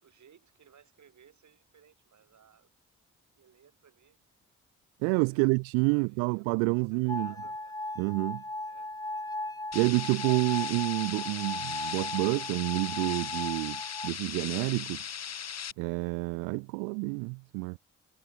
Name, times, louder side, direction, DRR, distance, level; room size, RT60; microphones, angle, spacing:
voice 1, 0.0-2.7 3.4-4.2 5.3-5.5 5.9-6.5 6.9-7.7 8.7-8.9, right 8 dB, 55° right, 4.7 m, -60 dB
voice 2, 5.0-7.3 8.0-8.4 9.7-15.0 15.8-17.8, right 40 dB or more, 85° right, 0.5 m, -29 dB
sound 1, 7.1-14.1, left 2 dB, 10° left, 1.9 m, -37 dB
sound 2, 9.7-15.7, left 8 dB, 50° left, 1.6 m, -38 dB
hypercardioid pair, 45°, 34 cm